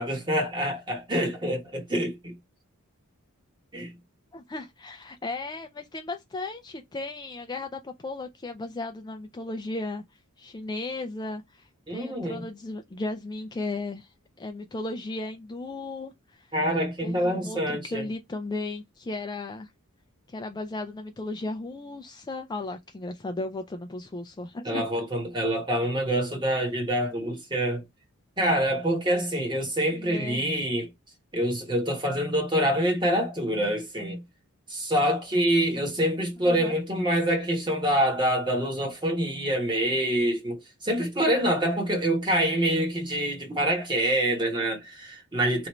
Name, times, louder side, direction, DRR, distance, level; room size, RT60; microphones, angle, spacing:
voice 1, 0.0-2.3 3.7-3.9 11.9-12.4 16.5-18.1 24.6-27.8 28.4-30.9 31.3-34.2 34.7-45.7, right 1 dB, 20° right, 1.2 m, -26 dB
voice 2, 4.3-10.0 10.4-14.1 14.4-16.5 17.0-19.7 20.3-24.8 29.9-30.4 36.4-36.8, left 2 dB, 20° left, 0.4 m, -35 dB
3.0 x 2.6 x 4.2 m
head